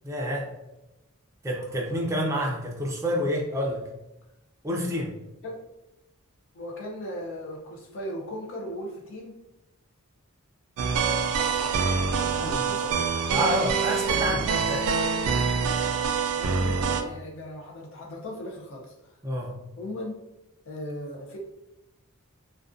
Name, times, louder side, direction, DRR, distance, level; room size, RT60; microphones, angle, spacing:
voice 1, 0.0-0.5 1.4-3.8 4.6-5.2 12.4-12.6 13.3-15.0 19.2-19.6, equal, 15° right, -2 dB, 0.4 m, -28 dB
voice 2, 6.5-9.3 12.4-13.1 16.3-19.2 19.8-20.1 20.7-21.4, left 1 dB, 60° left, -1 dB, 0.5 m, -37 dB
sound 1, 10.8-17.0, right 5 dB, 80° right, 0.3 m, -25 dB
2.4 x 2.2 x 2.4 m, 0.93 s
head